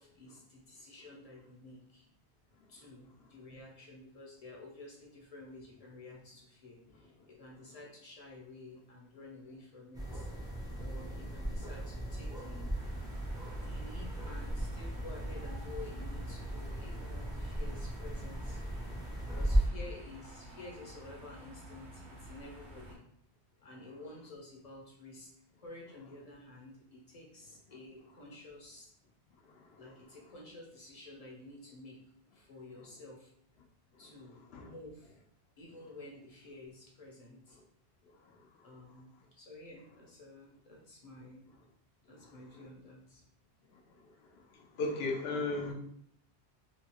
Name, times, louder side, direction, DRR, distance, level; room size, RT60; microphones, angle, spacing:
voice 1, 0.0-2.0 2.7-10.3 10.7-12.7 13.6-18.6 19.3-23.1 23.6-25.3 25.6-28.9 29.8-32.0 32.3-33.3 34.0-35.1 35.6-37.6 38.6-41.5 42.1-43.2, left 2 dB, 40° left, -2 dB, 0.7 m, -51 dB
sound 1, 9.9-19.7, right 1 dB, 5° right, 0.4 m, -36 dB
sound 2, 12.7-23.0, right 1 dB, 90° right, 1.0 m, -52 dB
voice 2, 44.6-45.7, left 3 dB, 75° left, 2 dB, 0.8 m, -35 dB
3.1 x 2.4 x 2.8 m, 0.67 s
omnidirectional pair, 1.1 m